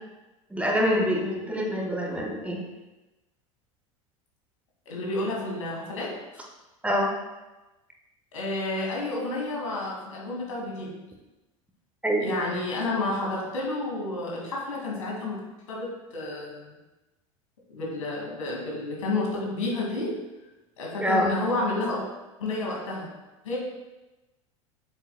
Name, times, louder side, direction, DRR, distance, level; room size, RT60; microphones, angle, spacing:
voice 1, 0.5-2.6 6.8-7.1 12.0-12.2 21.0-21.3, equal, 5° right, 0 dB, 1.1 m, -25 dB
voice 2, 4.9-6.2 8.3-10.9 12.2-15.4 15.7-16.8 17.7-20.1 20.8-22.1 22.4-23.1 23.4-23.6, left 2 dB, 70° left, -2 dB, 2.1 m, -30 dB
8.1 x 7.0 x 2.2 m, 1.1 s
figure-of-eight pair, 80°, 18 cm